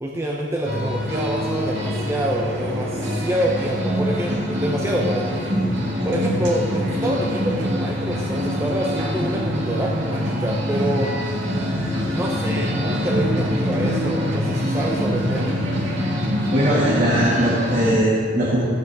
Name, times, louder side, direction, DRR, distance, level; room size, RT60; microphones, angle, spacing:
voice 1, 0.0-5.5 6.0-11.1 12.1-15.6, right 1 dB, 15° right, -3 dB, 0.6 m, -26 dB
sound 1, 0.6-17.9, equal, 85° right, 2.0 m, -24 dB
voice 2, 16.5-18.6, equal, 45° right, -8 dB, 1.9 m, -20 dB
14.0 x 9.2 x 3.5 m, 2.4 s
head